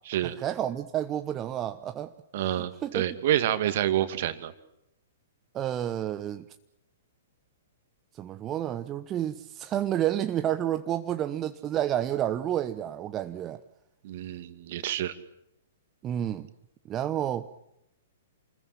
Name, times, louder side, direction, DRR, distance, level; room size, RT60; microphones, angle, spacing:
voice 1, 0.4-2.1 2.5-3.0 5.5-6.5 8.1-13.6 16.0-16.5 16.9-17.5, right 11 dB, 25° right, 1.0 m, -30 dB
voice 2, 2.3-4.5 14.0-15.1, right 12 dB, 50° right, 2.3 m, -28 dB
28.5 x 21.0 x 7.4 m
figure-of-eight pair, 110°, 0 cm